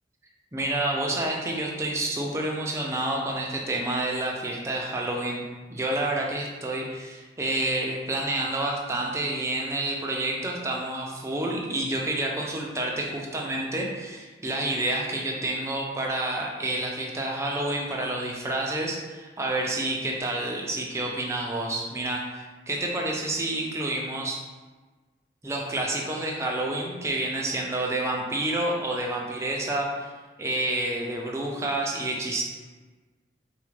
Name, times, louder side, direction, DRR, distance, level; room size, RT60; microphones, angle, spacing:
voice 1, 0.5-5.4 5.7-24.4 25.4-30.1 30.4-32.4, right 1 dB, 15° right, -1 dB, 0.4 m, -29 dB
3.4 x 2.4 x 3.2 m, 1.3 s
head